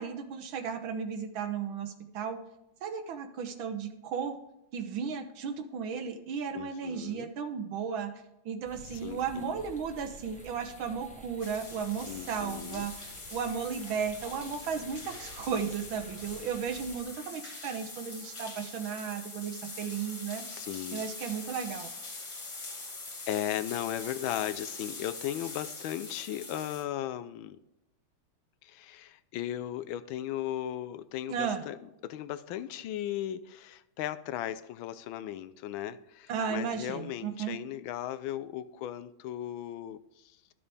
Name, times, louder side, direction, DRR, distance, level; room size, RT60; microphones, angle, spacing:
voice 1, 0.0-2.4 2.8-4.4 4.7-8.1 8.4-20.4 20.9-21.9 31.3-31.6 36.3-37.6, right 6 dB, 75° right, 7 dB, 1.6 m, -35 dB
voice 2, 6.5-7.3 9.0-9.6 12.1-12.9 20.5-21.1 23.3-27.6 28.6-31.8 32.0-40.4, left 12 dB, 80° left, 14 dB, 1.4 m, -36 dB
sound 1, 8.6-17.0, right 1 dB, 5° left, 0.7 m, -50 dB
sound 2, 11.4-26.8, left 3 dB, 55° left, 2.9 m, -43 dB
12.5 x 6.9 x 3.4 m, 0.88 s
omnidirectional pair, 2.3 m